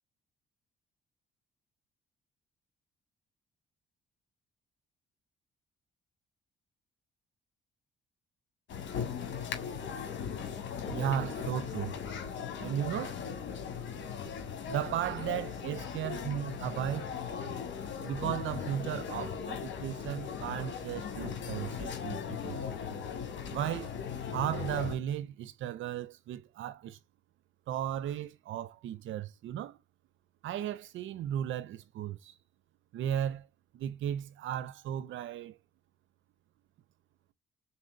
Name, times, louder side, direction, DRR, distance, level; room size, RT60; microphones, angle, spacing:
sound 1, 8.7-24.9, left 7 dB, 70° left, 2.0 m, -38 dB
voice 1, 10.9-12.0 12.6-13.2 14.7-17.1 18.0-22.7 23.5-23.9 24.3-27.0 27.7-29.8 30.4-32.4 32.9-33.5 33.7-35.6, right 10 dB, 75° right, 0.5 m, -35 dB
4.2 x 4.2 x 2.6 m
cardioid pair, 90°, 20 cm